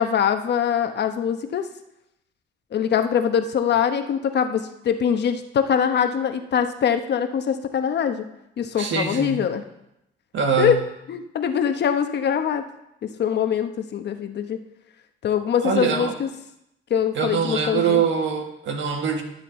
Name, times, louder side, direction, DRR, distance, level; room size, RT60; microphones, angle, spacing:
voice 1, 0.0-1.7 2.7-8.3 8.6-9.6 10.6-10.8 11.1-12.6 13.0-14.6 15.2-16.3 16.9-18.0, left 8 dB, 60° left, 7 dB, 1.0 m, -23 dB
voice 2, 8.8-9.4 10.3-10.8 15.6-16.1 17.1-19.2, right 6 dB, 70° right, 4 dB, 1.6 m, -23 dB
12.5 x 7.5 x 4.3 m, 0.83 s
cardioid pair, 90°, 20 cm